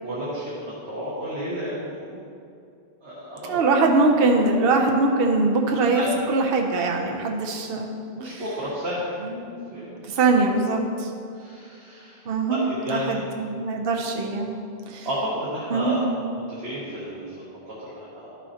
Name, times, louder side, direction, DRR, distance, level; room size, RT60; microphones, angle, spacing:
voice 1, 0.0-2.1 3.0-3.6 5.9-6.3 8.1-10.0 10.9-11.0 11.4-12.2 12.5-13.2 14.4-14.6 15.0-16.1 16.5-18.4, equal, 90° right, -8 dB, 1.7 m, -32 dB
voice 2, 3.5-7.9 8.2-8.4 9.2-9.4 10.0-11.1 12.3-12.6 12.9-14.6 14.9-15.1 15.7-16.0, right 3 dB, 70° right, 2 dB, 0.9 m, -22 dB
11.5 x 6.3 x 2.8 m, 2.4 s
omnidirectional pair, 1.1 m